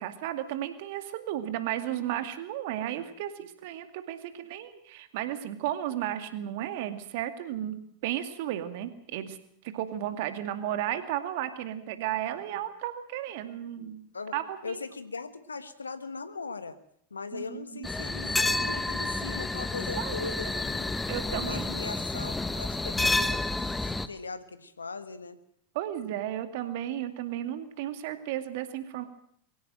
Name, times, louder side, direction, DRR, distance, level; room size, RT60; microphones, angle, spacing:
voice 1, 0.0-9.4 9.6-14.0 14.3-14.8 17.3-17.9 20.0-20.3 20.5-20.6 21.1-21.7 25.7-29.0, right 12 dB, 60° right, 9 dB, 2.3 m, -34 dB
voice 2, 14.6-16.8 17.1-20.9 21.3-25.4, left 4 dB, 90° left, 12 dB, 1.5 m, -39 dB
sound 1, 17.8-24.1, left 2 dB, 10° left, 1.3 m, -30 dB
23.0 x 16.5 x 7.8 m, 0.68 s
hypercardioid pair, 90°, 0 cm